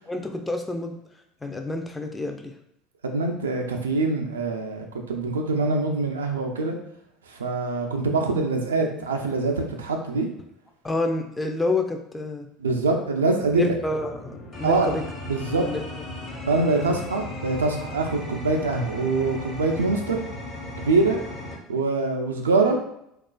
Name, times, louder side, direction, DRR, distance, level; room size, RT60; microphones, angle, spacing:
voice 1, 0.1-1.0 1.4-2.5 10.8-12.5 13.5-15.0 15.5-15.8 16.8-17.0, left 2 dB, 15° left, 4 dB, 0.4 m, -28 dB
voice 2, 3.0-6.8 7.3-10.3 12.6-13.7 14.6-14.9 15.3-15.6 16.5-20.3 20.8-21.2 21.7-22.8, right 3 dB, 90° right, 3 dB, 0.3 m, -24 dB
sound 1, 13.4-21.6, left 1 dB, 45° left, 1.0 m, -37 dB
2.3 x 2.3 x 2.2 m, 0.77 s
hypercardioid pair, 70°, 0 cm